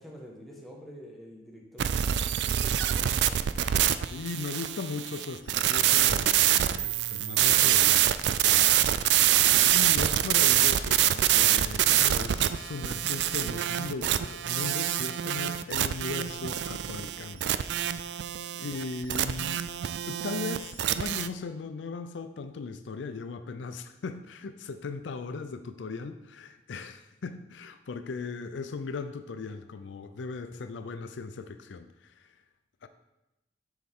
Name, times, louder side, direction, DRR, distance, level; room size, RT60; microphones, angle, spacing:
voice 1, 0.0-3.4, equal, ahead, -3 dB, 1.4 m, -47 dB
sound 1, 1.8-21.3, right 12 dB, 65° right, 0.3 m, -25 dB
voice 2, 4.1-8.6 9.5-17.7 17.9-18.2 18.6-19.6 20.1-32.3 32.8-32.9, left 4 dB, 85° left, 10 dB, 0.4 m, -38 dB
7.8 x 6.3 x 3.6 m, 0.96 s
head